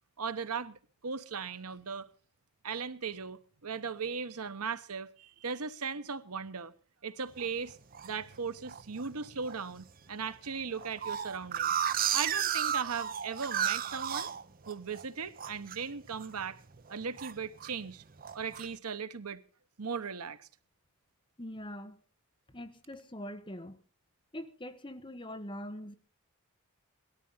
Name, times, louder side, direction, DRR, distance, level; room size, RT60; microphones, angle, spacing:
voice 1, 0.2-2.1 2.6-6.7 7.0-7.8 8.0-11.8 12.1-14.3 14.7-16.6 16.9-18.0 18.3-19.4 19.8-20.5, right 5 dB, 90° right, 1.1 m, -38 dB
sound 1, 7.4-8.1 8.7-9.1 9.5-9.6 9.8-9.9 10.2-15.0 15.4-15.8 16.1-16.5 16.8-17.7 18.2-18.7, right 9 dB, 40° right, 0.7 m, -33 dB
voice 2, 21.4-22.0 22.5-23.8 24.3-25.9, left 1 dB, 20° left, 1.3 m, -43 dB
18.5 x 13.0 x 5.6 m
head